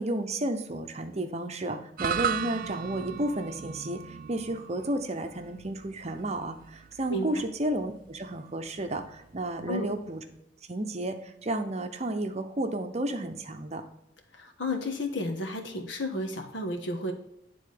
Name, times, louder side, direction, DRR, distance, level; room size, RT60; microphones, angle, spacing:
voice 1, 0.0-10.2 10.7-13.8, right 1 dB, 35° right, 7 dB, 0.8 m, -32 dB
sound 1, 2.0-10.4, right 8 dB, 50° right, 0.3 m, -37 dB
voice 2, 14.3-17.1, left 1 dB, 80° left, 3 dB, 1.4 m, -32 dB
9.7 x 3.8 x 4.9 m, 0.83 s
head